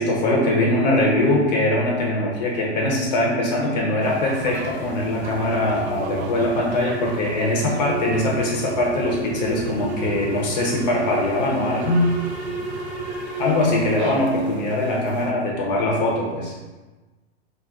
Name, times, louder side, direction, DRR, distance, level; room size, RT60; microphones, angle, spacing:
voice 1, 0.0-12.1 13.4-16.5, left 1 dB, 40° left, -2 dB, 0.6 m, -22 dB
sound 1, 4.0-15.3, right 4 dB, 80° right, 0.5 m, -36 dB
sound 2, 4.8-13.5, right 2 dB, 45° right, 0.7 m, -34 dB
2.4 x 2.3 x 3.4 m, 1.2 s
supercardioid pair, 150°, 33 cm